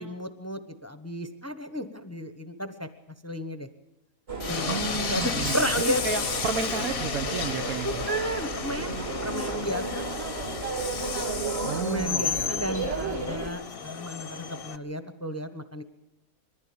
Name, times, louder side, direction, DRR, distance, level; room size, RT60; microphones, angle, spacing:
voice 1, 0.0-2.9 3.2-3.7 4.5-4.8 5.1-6.0 7.8-9.0 9.2-10.0 11.8-15.8, equal, 10° left, 9 dB, 0.9 m, -33 dB
sound 1, 4.3-13.5, right 3 dB, 45° right, 2.1 m, -34 dB
Train, 4.4-14.8, left 6 dB, 45° left, 1.0 m, -33 dB
voice 2, 4.7-5.6 6.0-8.0 11.6-12.6, right 6 dB, 70° right, 9 dB, 1.4 m, -32 dB
21.5 x 15.0 x 8.6 m, 0.93 s
omnidirectional pair, 1.6 m